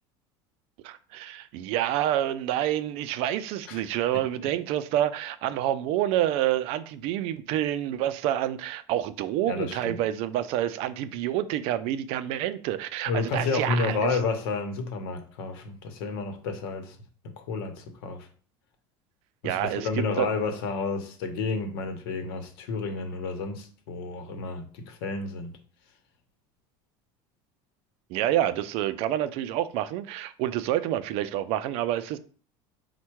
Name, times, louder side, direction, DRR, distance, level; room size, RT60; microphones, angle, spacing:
voice 1, 0.8-14.2 19.4-20.3 28.1-32.2, right 12 dB, 60° right, 0.4 m, -28 dB
voice 2, 9.5-10.0 13.1-17.0 17.2-18.3 19.4-25.6, left 4 dB, 90° left, 0.8 m, -31 dB
4.4 x 2.2 x 4.5 m
cardioid pair, 150°, 12 cm